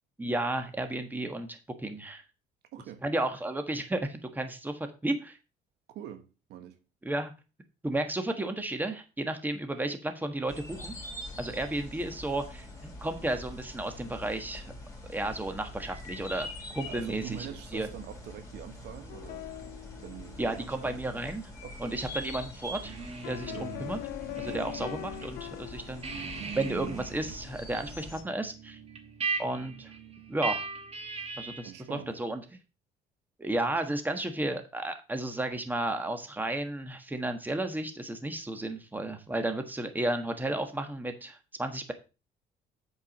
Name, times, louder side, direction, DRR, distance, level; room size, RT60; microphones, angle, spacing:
voice 1, 0.2-2.2 3.0-5.4 7.0-7.3 7.8-10.9 11.4-14.7 15.1-16.5 16.7-17.9 20.4-21.5 21.8-23.0 23.2-24.0 24.4-26.2 26.5-28.8 29.4-29.9 30.3-30.6 31.4-32.4 33.4-41.9, right 1 dB, 10° right, 1.4 m, -33 dB
voice 2, 2.7-3.0 5.9-6.8 16.8-19.5 20.0-21.0 21.6-22.0 23.5-23.7 24.5-24.7 31.6-32.1, right 10 dB, 80° right, 1.3 m, -44 dB
sound 1, 10.5-28.2, left 1 dB, 15° left, 3.2 m, -44 dB
sound 2, 19.1-20.7 23.2-26.5, left 16 dB, 85° left, 0.5 m, -41 dB
sound 3, 22.8-25.3 25.6-31.8, right 4 dB, 35° right, 1.9 m, -39 dB
8.3 x 4.8 x 5.9 m
cardioid pair, 110°, 17 cm